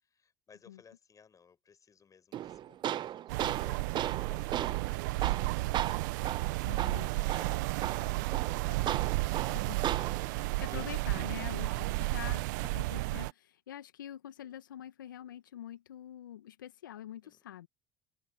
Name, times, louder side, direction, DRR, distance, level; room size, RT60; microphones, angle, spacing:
voice 1, 0.0-5.9 6.4-9.2 9.6-10.0 10.2-10.9 11.6-12.4 17.2-17.4, left 6 dB, 35° left, 7.2 m, -59 dB
Tools, 2.3-10.3, right 11 dB, 45° right, 1.2 m, -36 dB
sound 1, 3.3-13.3, right 22 dB, 70° right, 1.3 m, -33 dB
voice 2, 6.7-7.1 8.6-8.7 9.5-17.7, left 11 dB, 80° left, 1.6 m, -46 dB
hypercardioid pair, 65°, 10 cm